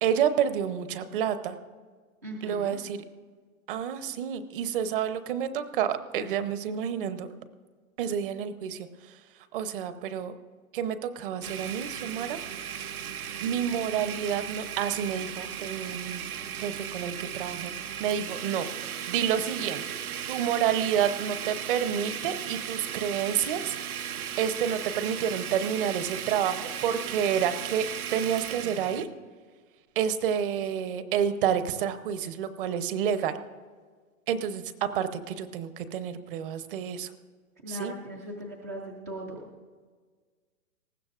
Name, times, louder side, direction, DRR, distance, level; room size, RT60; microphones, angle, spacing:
voice 1, 0.0-1.6 2.4-3.0 3.7-7.3 8.0-9.2 9.5-10.3 10.7-12.4 13.4-18.7 19.1-19.8 20.3-24.1 24.4-27.9 28.1-29.1 30.0-33.3 34.3-37.1 37.7-37.9, right 8 dB, 40° right, 11 dB, 0.8 m, -29 dB
voice 2, 2.2-2.8 37.6-39.5, equal, 15° right, -2 dB, 0.3 m, -39 dB
Domestic sounds home sounds, 11.4-29.0, right 9 dB, 85° right, 0.9 m, -36 dB
19.0 x 15.0 x 2.5 m, 1.5 s
hypercardioid pair, 140°, 42 cm